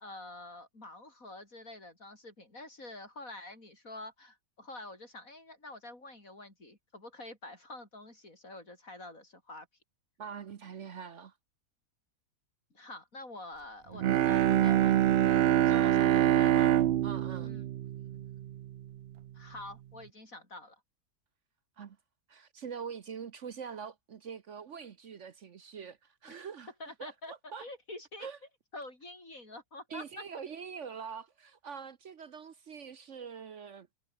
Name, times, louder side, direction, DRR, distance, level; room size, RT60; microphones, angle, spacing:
voice 1, 0.0-9.7 12.7-16.8 17.4-18.4 19.3-20.8 26.3-26.4 26.8-27.3 27.6-28.3 28.7-30.0, left 2 dB, 60° left, 6.8 m, -47 dB
voice 2, 10.2-11.3 15.7-16.4 17.0-17.5 21.8-22.0 22.3-26.7 27.0-27.6 28.2-28.4 29.9-33.9, right 6 dB, 55° right, 1.2 m, -44 dB
Bowed string instrument, 13.9-18.8, right 12 dB, 85° right, 0.5 m, -25 dB
omnidirectional pair, 1.6 m